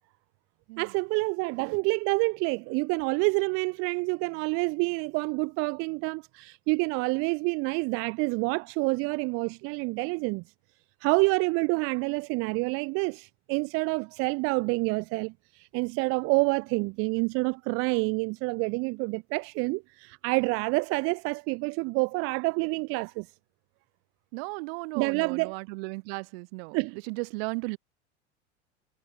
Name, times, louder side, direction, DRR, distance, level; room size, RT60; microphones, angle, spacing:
voice 1, 0.8-10.4 11.0-23.3 24.9-25.6 26.7-27.0, right 29 dB, 40° right, 0.5 m, -28 dB
voice 2, 24.3-27.8, right 31 dB, 55° right, 2.4 m, -36 dB
hypercardioid pair, 85°, 35 cm